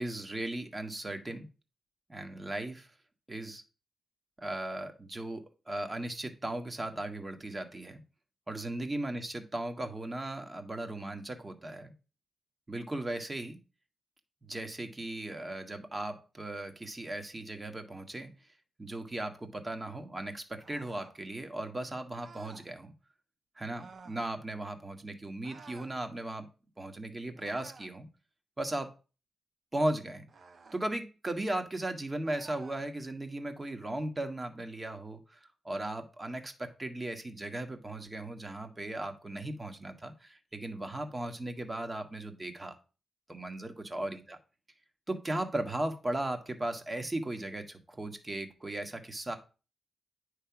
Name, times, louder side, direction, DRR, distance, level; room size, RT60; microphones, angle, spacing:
voice 1, 0.0-1.5 2.1-2.9 3.3-3.6 4.4-8.0 8.5-11.9 12.7-13.6 14.4-18.3 18.8-22.9 23.6-26.5 26.8-28.1 28.6-28.9 29.7-30.3 30.7-42.7 43.3-44.4 45.1-49.4, right 1 dB, 25° right, 6 dB, 1.5 m, -37 dB
sound 1, 20.6-21.2 22.1-22.7 23.7-24.2 25.4-26.0 27.4-28.0 30.3-30.9 32.2-32.9, right 4 dB, 60° right, 0.7 m, -52 dB
9.2 x 3.4 x 5.9 m, 0.34 s
supercardioid pair, 50°, 0 cm